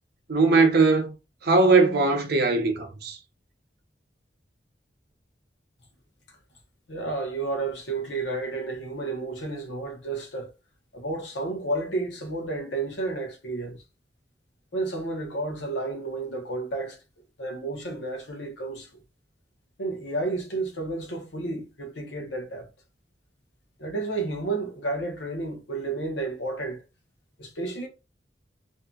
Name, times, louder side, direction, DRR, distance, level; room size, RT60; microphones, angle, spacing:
voice 1, 0.3-1.1 1.4-3.2, right 3 dB, 60° right, 0.6 m, -20 dB
voice 2, 6.9-10.5 10.9-13.8 14.7-17.0 17.4-18.9 19.8-22.7 23.8-26.8 27.4-27.9, right 2 dB, 85° left, 0.9 m, -31 dB
2.7 x 2.6 x 2.3 m
head